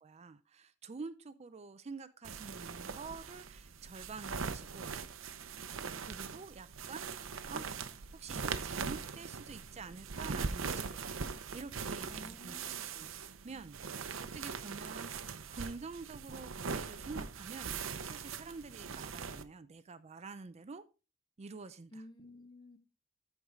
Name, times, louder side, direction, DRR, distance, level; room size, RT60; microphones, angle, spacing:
voice 1, 0.0-4.9 6.0-11.2 11.5-20.8 21.4-22.0, right 4 dB, 35° right, 0.5 m, -48 dB
sound 1, 2.2-19.4, right 5 dB, 70° right, 0.7 m, -41 dB
voice 2, 12.1-13.0 21.9-22.8, left 1 dB, 25° left, 1.3 m, -53 dB
13.5 x 4.6 x 3.6 m
head